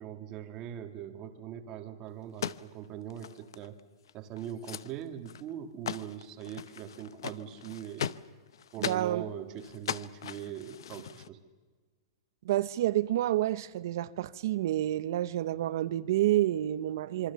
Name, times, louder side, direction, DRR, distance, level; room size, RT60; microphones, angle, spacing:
voice 1, 0.0-3.8 4.1-8.1 8.7-11.4, right 10 dB, 25° right, 8 dB, 1.8 m, -41 dB
sound 1, 2.2-4.1 4.4-4.9 5.2-5.6 5.9-9.1 9.6-11.3, left 9 dB, 85° left, 0.8 m, -39 dB
voice 2, 8.8-9.2 12.4-17.3, right 13 dB, 50° right, 16 dB, 0.8 m, -29 dB
26.5 x 24.0 x 6.9 m, 1.4 s
supercardioid pair, 175°, 2 cm